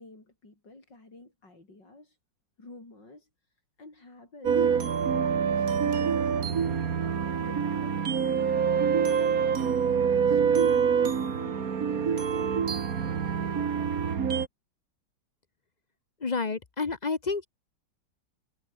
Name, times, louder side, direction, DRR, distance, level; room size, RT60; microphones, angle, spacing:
voice 1, 0.0-2.2 2.6-4.7 5.1-6.8 7.4-12.4, left 2 dB, 80° left, 7.7 m, -50 dB
sound 1, 4.4-14.5, right 7 dB, 55° right, 1.9 m, -26 dB
voice 2, 16.2-17.5, left 4 dB, 35° left, 0.8 m, -29 dB
omnidirectional pair, 1.9 m